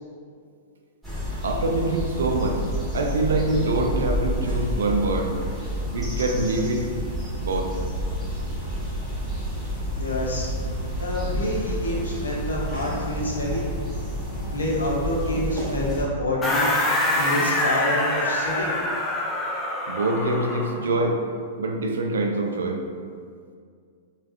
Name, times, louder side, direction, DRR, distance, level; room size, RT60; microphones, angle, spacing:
sound 1, 1.0-16.0, equal, 5° right, 1.1 m, -29 dB
voice 1, 1.4-2.6 2.9-5.4 5.9-6.9 7.3-7.7 19.9-21.2 21.6-22.8, right 2 dB, 75° right, 2 dB, 0.3 m, -24 dB
voice 2, 10.0-10.5 11.0-13.7 14.5-18.7, left 1 dB, 85° left, -3 dB, 0.6 m, -27 dB
sound 2, 16.4-20.8, left 1 dB, 20° left, 0.4 m, -25 dB
3.4 x 2.2 x 2.5 m, 2.1 s
hypercardioid pair, 105°, 0 cm